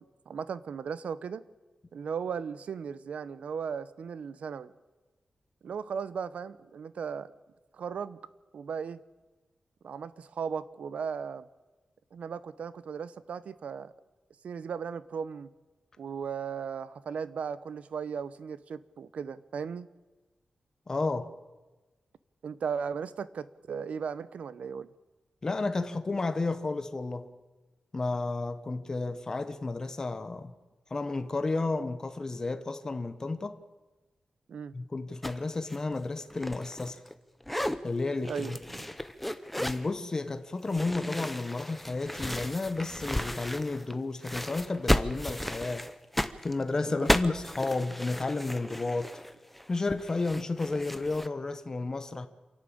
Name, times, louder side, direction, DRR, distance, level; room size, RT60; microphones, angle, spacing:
voice 1, 0.0-1.4 1.9-4.7 5.6-7.3 7.7-8.2 8.5-9.0 9.8-11.4 12.1-13.9 14.4-15.5 16.0-19.9 22.4-24.9 34.5-34.8 38.3-38.8 46.8-47.1, right 6 dB, 85° right, 0.8 m, -36 dB
voice 2, 20.9-21.3 25.4-27.3 27.9-30.5 30.9-33.6 34.7-37.0 37.8-38.6 39.6-45.9 46.4-49.2 49.7-52.3, left 3 dB, 25° left, 1.0 m, -32 dB
sound 1, 35.2-35.4 35.7-37.1 37.4-37.8 38.2-39.9 40.6-43.9 44.2-51.3, left 1 dB, 5° left, 0.8 m, -34 dB
27.5 x 11.5 x 8.7 m
wide cardioid pair, 160°, 2 cm